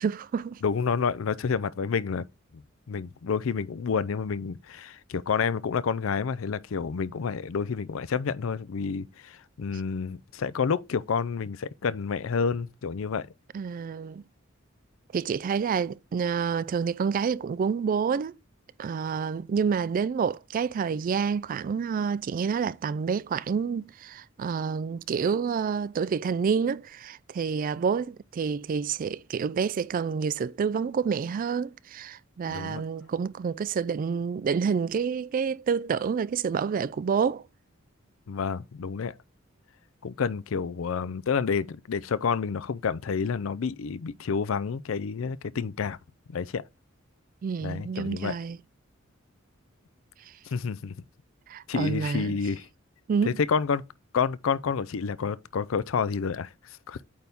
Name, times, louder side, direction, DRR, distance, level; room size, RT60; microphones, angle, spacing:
voice 1, 0.0-0.6 13.5-14.2 15.1-18.4 18.8-37.4 47.4-48.6 51.5-52.4 53.1-53.4, right 6 dB, 45° right, 0.3 m, -28 dB
voice 2, 0.6-2.2 2.5-2.6 2.9-13.3 32.5-32.8 38.3-39.1 40.0-46.0 46.3-46.6 47.6-48.3 50.5-50.9 51.7-52.7 53.3-53.8 54.1-57.1, left 5 dB, 75° left, 0.5 m, -29 dB
8.7 x 3.5 x 3.9 m
head